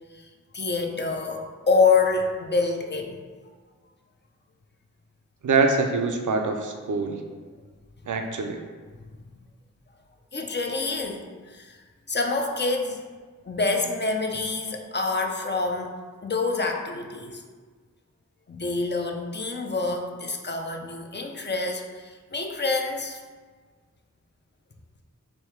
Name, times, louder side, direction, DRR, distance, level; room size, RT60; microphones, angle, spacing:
voice 1, 0.5-3.2 10.3-11.8 12.1-13.0 13.5-17.4 18.5-23.2, left 4 dB, 35° left, 3 dB, 0.5 m, -27 dB
voice 2, 5.4-7.2 8.1-8.6, right 4 dB, 75° right, 4 dB, 0.5 m, -24 dB
3.4 x 2.7 x 4.5 m, 1.5 s
wide cardioid pair, 55°, 31 cm